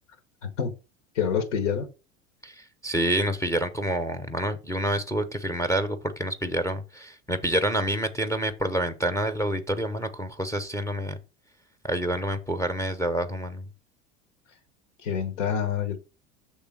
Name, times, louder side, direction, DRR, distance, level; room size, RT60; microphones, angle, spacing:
voice 1, 0.4-0.7 1.1-1.9 15.0-16.0, left 7 dB, 75° left, 1.2 m, -27 dB
voice 2, 2.4-11.2 11.8-13.7, right 1 dB, 10° left, 0.8 m, -28 dB
6.5 x 3.4 x 5.9 m
hypercardioid pair, 80°, 36 cm